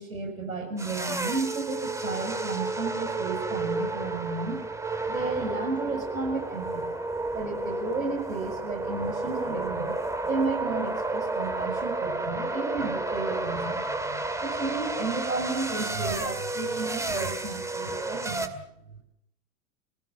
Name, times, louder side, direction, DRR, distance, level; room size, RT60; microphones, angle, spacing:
voice 1, 0.0-4.6 5.1-7.0 7.3-10.0 10.2-18.6, right 3 dB, 80° right, 3 dB, 6.6 m, -33 dB
sound 1, 0.8-18.5, right 2 dB, 5° right, 2.2 m, -31 dB
26.5 x 19.0 x 7.2 m, 0.77 s
figure-of-eight pair, 90°, 41 cm